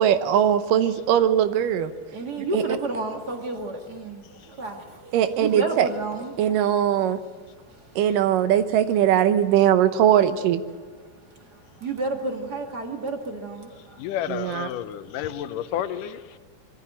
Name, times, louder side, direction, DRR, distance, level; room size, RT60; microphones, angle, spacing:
voice 1, 0.0-1.9 2.5-2.6 5.1-5.9 6.4-7.2 8.0-10.6 14.3-14.7, right 10 dB, 80° right, 11 dB, 2.5 m, -20 dB
voice 2, 2.1-6.6 7.4-8.0 11.0-14.2 14.9-15.0 15.6-15.7, right 2 dB, 35° right, 3 dB, 2.0 m, -32 dB
voice 3, 14.0-16.4, left 11 dB, 80° left, 13 dB, 2.3 m, -31 dB
22.0 x 14.5 x 8.9 m, 1.4 s
omnidirectional pair, 3.8 m